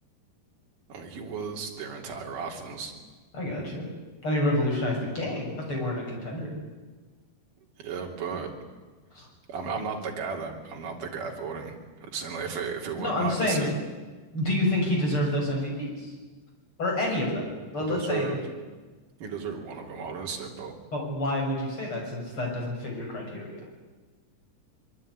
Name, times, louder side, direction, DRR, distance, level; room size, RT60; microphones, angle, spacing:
voice 1, 0.9-2.9 7.8-8.5 9.5-11.8 12.1-13.7 17.8-18.4 19.2-20.8, right 5 dB, 50° right, 1 dB, 4.6 m, -34 dB
voice 2, 3.3-3.9 4.2-6.5 9.1-9.3 13.0-13.7 14.3-16.1 16.8-18.4 20.9-23.5, left 1 dB, 30° left, 0 dB, 7.7 m, -28 dB
24.5 x 23.0 x 9.9 m, 1.3 s
omnidirectional pair, 5.1 m